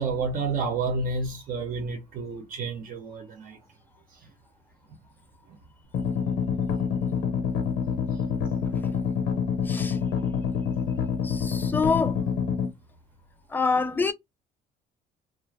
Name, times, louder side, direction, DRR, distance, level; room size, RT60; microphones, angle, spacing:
voice 1, 0.0-3.6, right 4 dB, 55° right, 0.8 m, -30 dB
sound 1, 5.9-12.7, left 7 dB, 90° left, 0.8 m, -27 dB
voice 2, 9.7-10.0 11.2-12.2 13.5-14.1, left 4 dB, 10° left, 0.4 m, -26 dB
2.4 x 2.1 x 3.2 m
cardioid pair, 110°, 17 cm